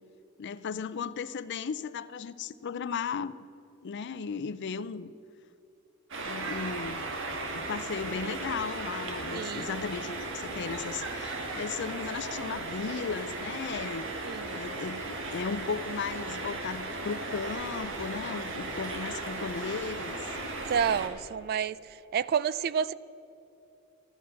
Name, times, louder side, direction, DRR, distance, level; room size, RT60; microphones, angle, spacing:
voice 1, 0.4-3.4 3.8-5.1 6.2-7.0 7.5-14.1 14.5-15.0 15.3-20.4, left 5 dB, 55° left, 16 dB, 0.4 m, -36 dB
sound 1, 6.1-21.1, right 2 dB, 60° right, 1.6 m, -36 dB
voice 2, 9.3-9.7 14.2-14.6 20.7-22.9, right 7 dB, 45° right, 18 dB, 0.3 m, -30 dB
14.0 x 11.0 x 5.8 m, 2.9 s
head